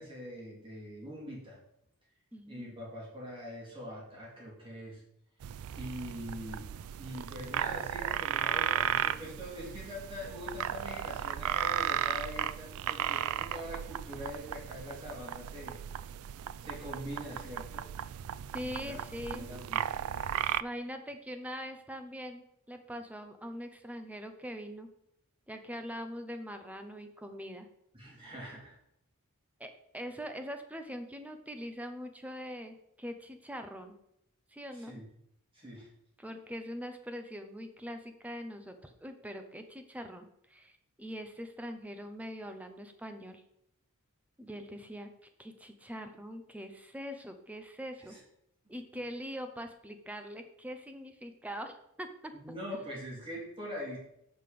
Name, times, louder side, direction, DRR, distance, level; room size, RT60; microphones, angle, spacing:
voice 1, 0.0-1.6 2.5-5.0 5.7-6.7 7.0-15.8 16.6-17.9 18.6-20.0 27.9-28.8 34.8-35.0 35.5-35.9 48.1-48.2 48.9-49.0 52.4-54.0, equal, 25° right, -4 dB, 2.9 m, -43 dB
voice 2, 2.3-2.7 18.5-19.5 20.6-24.9 25.5-27.7 29.6-33.9 34.5-34.9 36.2-43.4 44.4-45.1 45.4-48.1 48.7-52.6, equal, 5° right, 7 dB, 0.7 m, -42 dB
sound 1, 5.4-20.6, right 10 dB, 70° right, 0.3 m, -35 dB
7.8 x 5.1 x 5.2 m, 0.76 s
head